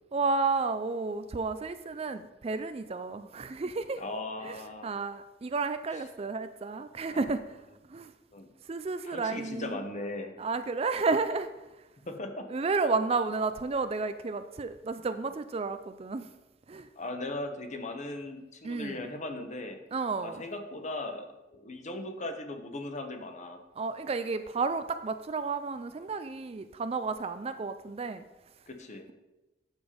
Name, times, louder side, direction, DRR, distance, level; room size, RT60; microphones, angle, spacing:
voice 1, 0.1-4.0 4.4-4.6 4.8-7.4 7.9-8.1 8.7-9.8 10.4-11.5 12.5-16.3 16.7-16.9 18.6-19.0 19.9-20.4 23.8-28.2, right 4 dB, 35° right, 11 dB, 0.4 m, -31 dB
voice 2, 4.0-4.9 5.9-6.0 7.1-7.2 8.3-8.5 9.0-10.3 12.0-12.5 17.0-19.8 20.2-21.3 21.5-23.6 28.7-29.1, left 2 dB, 40° left, 5 dB, 1.1 m, -38 dB
8.2 x 6.8 x 5.0 m, 1.0 s
head